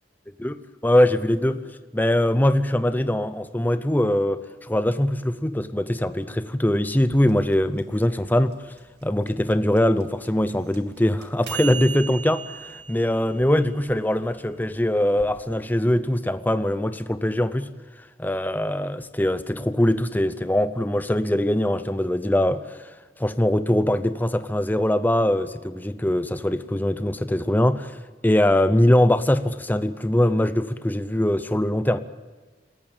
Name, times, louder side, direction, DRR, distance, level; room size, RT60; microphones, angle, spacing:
voice 1, 0.4-1.6 1.9-8.6 9.0-17.7 18.2-22.9 23.2-28.0 28.2-32.0, left 1 dB, 10° left, 11 dB, 0.7 m, -22 dB
sound 1, 7.1-15.3, right 8 dB, 65° right, 2.4 m, -39 dB
27.5 x 14.5 x 9.0 m, 1.3 s
head